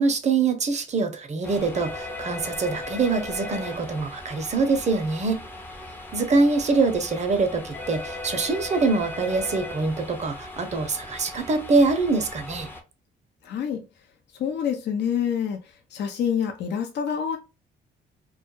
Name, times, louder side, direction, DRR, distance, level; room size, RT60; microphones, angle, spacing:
voice 1, 0.0-5.4 6.1-12.7, right 3 dB, 35° right, 0.6 m, -24 dB
sound 1, 1.4-12.8, left 2 dB, 10° left, 0.5 m, -37 dB
voice 2, 13.4-13.8 14.3-17.4, left 8 dB, 60° left, 0.5 m, -27 dB
2.2 x 2.1 x 2.9 m
cardioid pair, 90°, 20 cm